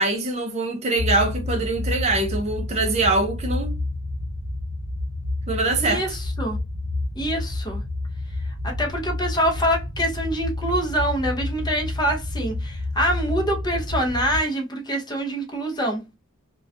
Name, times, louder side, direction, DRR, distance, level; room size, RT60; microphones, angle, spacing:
voice 1, 0.0-3.8 5.5-6.0, right 2 dB, 35° right, 0.5 m, -23 dB
sound 1, 1.0-14.4, left 2 dB, 70° left, 0.7 m, -29 dB
voice 2, 5.8-6.6 7.2-7.8 8.6-16.0, equal, 20° left, 0.6 m, -25 dB
2.3 x 2.2 x 2.4 m
head